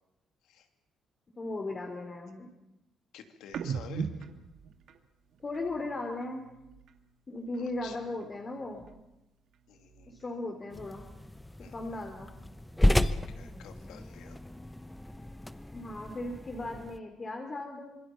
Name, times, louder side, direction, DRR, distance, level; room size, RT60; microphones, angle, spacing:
voice 1, 1.4-2.5 5.4-6.5 7.3-8.9 10.1-11.0 11.7-12.3 15.7-18.0, left 2 dB, 35° left, 3 dB, 3.3 m, -37 dB
voice 2, 3.1-4.1 7.5-8.0 9.7-10.2 11.6-12.0 13.0-14.4, left 8 dB, 85° left, 6 dB, 2.8 m, -51 dB
sound 1, 3.5-7.1 7.4-9.2 9.5-11.4 11.7-13.6, right 6 dB, 70° right, 2.1 m, -43 dB
sound 2, 10.7-17.0, left 1 dB, 10° left, 1.0 m, -32 dB
26.0 x 22.0 x 7.1 m, 0.93 s
cardioid pair, 90°, 0 cm